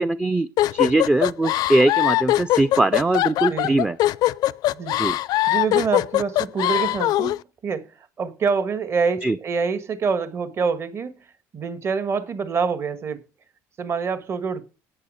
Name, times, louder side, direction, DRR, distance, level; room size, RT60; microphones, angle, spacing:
voice 1, 0.0-4.0 5.0-5.2 9.2-9.4, right 2 dB, 10° right, 0.5 m, -21 dB
sound 1, 0.6-7.4, left 15 dB, 70° left, 0.5 m, -21 dB
voice 2, 5.5-11.2 11.5-13.2 13.8-14.6, right 5 dB, 40° right, 1.5 m, -26 dB
9.7 x 8.3 x 6.4 m
cardioid pair, 115°, 7 cm